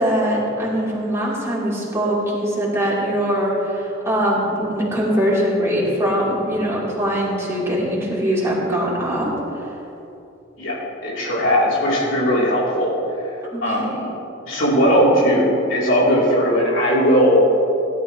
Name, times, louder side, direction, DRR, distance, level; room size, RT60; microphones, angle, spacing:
voice 1, 0.0-9.7 13.5-14.0, equal, 15° right, -7 dB, 3.4 m, -22 dB
voice 2, 11.0-12.9 13.6-13.9 14.4-17.4, equal, 85° left, -7 dB, 3.4 m, -18 dB
18.5 x 11.5 x 3.1 m, 2.9 s
head